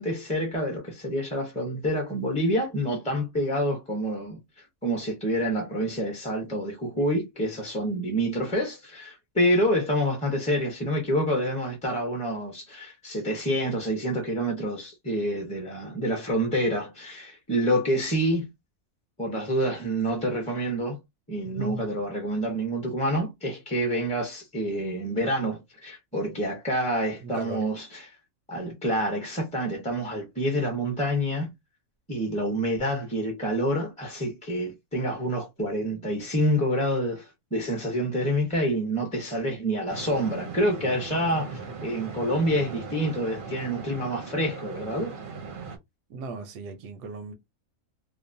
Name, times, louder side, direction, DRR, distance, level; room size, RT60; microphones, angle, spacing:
voice 1, 0.0-18.5 19.2-21.0 21.3-28.2 28.5-31.5 32.1-45.1, equal, 10° left, 0.4 m, -27 dB
voice 2, 21.6-21.9 27.2-27.6 46.1-47.3, right 4 dB, 90° right, 1.2 m, -37 dB
sound 1, 39.9-45.8, right 5 dB, 60° right, 0.5 m, -38 dB
2.9 x 2.0 x 2.6 m
omnidirectional pair, 1.6 m